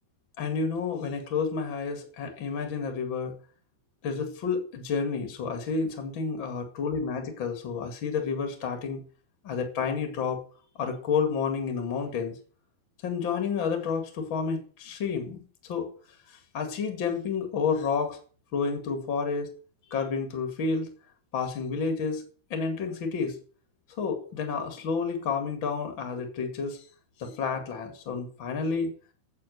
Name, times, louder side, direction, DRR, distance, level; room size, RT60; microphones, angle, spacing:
voice 1, 0.4-3.4 4.0-9.0 9.4-10.4 10.8-12.3 13.0-15.9 16.3-18.2 18.5-19.5 19.9-20.9 21.3-22.2 22.5-23.4 24.0-26.8 27.2-28.9, left 5 dB, 40° left, 6 dB, 2.1 m, -30 dB
8.4 x 7.5 x 8.0 m, 0.42 s
omnidirectional pair, 4.8 m